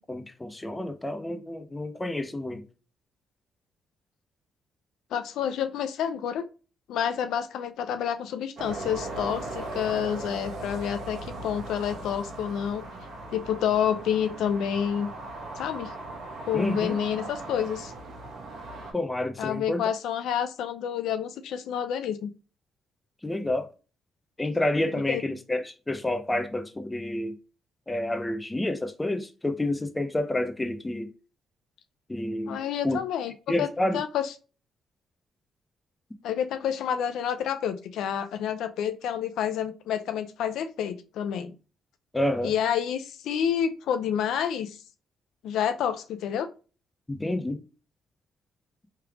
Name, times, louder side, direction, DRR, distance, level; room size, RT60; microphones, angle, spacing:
voice 1, 0.0-2.6 16.5-17.0 18.9-19.8 23.2-23.7 24.4-27.4 27.9-31.1 32.1-33.0 33.5-34.0 42.1-42.5 47.1-47.6, left 1 dB, 15° left, 0.4 m, -29 dB
voice 2, 5.1-6.4 6.9-12.8 13.3-15.1 15.6-15.9 16.5-17.9 19.4-22.3 25.1-25.2 32.5-33.3 33.6-34.3 36.2-41.5 42.4-44.8 45.4-46.5, left 9 dB, 80° left, 0.3 m, -29 dB
sound 1, 8.6-18.9, right 2 dB, 70° right, 1.0 m, -38 dB
3.2 x 3.2 x 2.3 m
cardioid pair, 90°, 0 cm